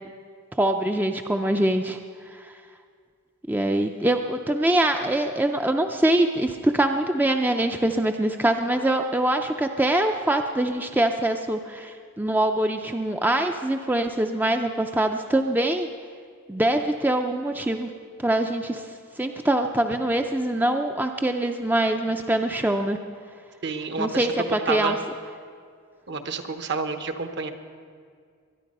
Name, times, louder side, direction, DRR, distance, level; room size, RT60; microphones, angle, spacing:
voice 1, 0.6-2.0 2.3-2.5 3.5-15.9 16.5-17.9 18.2-18.9 19.2-23.0 24.0-25.0, right 1 dB, 10° right, 5 dB, 0.4 m, -24 dB
voice 2, 23.6-24.3 24.7-24.9 26.1-27.5, right 4 dB, 55° right, 8 dB, 1.0 m, -29 dB
22.0 x 10.5 x 5.4 m, 2.1 s
head